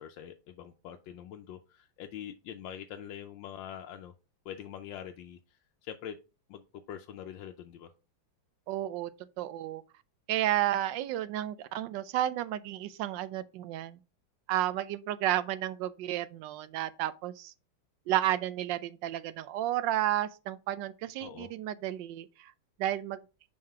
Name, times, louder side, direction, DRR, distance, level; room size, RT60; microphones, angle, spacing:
voice 1, 0.0-4.1 4.4-6.2 6.5-7.9 21.2-21.5, left 9 dB, 80° left, 1.3 m, -44 dB
voice 2, 8.7-9.1 9.4-9.8 10.3-14.0 14.5-17.5 18.1-22.5 22.8-23.2, right 13 dB, 80° right, 1.3 m, -32 dB
5.6 x 4.7 x 4.5 m
omnidirectional pair, 2.0 m